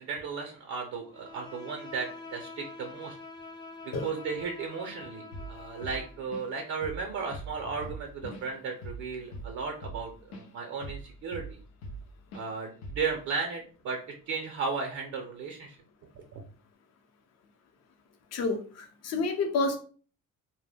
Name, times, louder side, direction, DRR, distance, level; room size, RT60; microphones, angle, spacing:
voice 1, 0.0-3.2 3.8-11.6 12.3-14.0 14.3-15.8 16.1-16.4, right 5 dB, 60° right, 2 dB, 0.6 m, -35 dB
Bowed string instrument, 1.1-6.3, left 3 dB, 15° left, 0.5 m, -46 dB
Drum kit / Drum, 5.3-5.6 5.8-6.6 6.8-7.1 7.3-10.5 10.8-12.1 12.3-12.5 12.8-13.2, right 2 dB, 90° left, 0.6 m, -41 dB
voice 2, 18.3-19.8, left 3 dB, 50° left, 4 dB, 0.7 m, -29 dB
2.1 x 2.0 x 3.3 m, 0.41 s
supercardioid pair, 85°, 32 cm